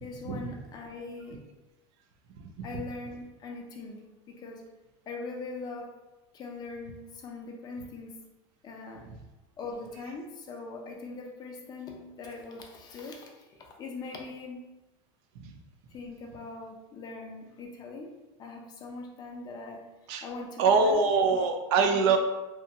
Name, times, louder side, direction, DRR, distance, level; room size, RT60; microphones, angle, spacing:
voice 1, 0.0-1.4 2.6-4.6 5.1-5.9 6.3-8.2 8.6-9.0 9.6-14.6 15.9-18.1 18.4-19.8 20.2-21.0 21.3-21.4 21.8-22.2, left 3 dB, 25° left, 1 dB, 0.4 m, -41 dB
voice 2, 2.4-2.8 15.4-15.6 20.1-20.3 20.6-22.2, right 4 dB, 60° right, 5 dB, 0.4 m, -24 dB
2.8 x 2.2 x 2.7 m, 1.1 s
supercardioid pair, 145°, 16 cm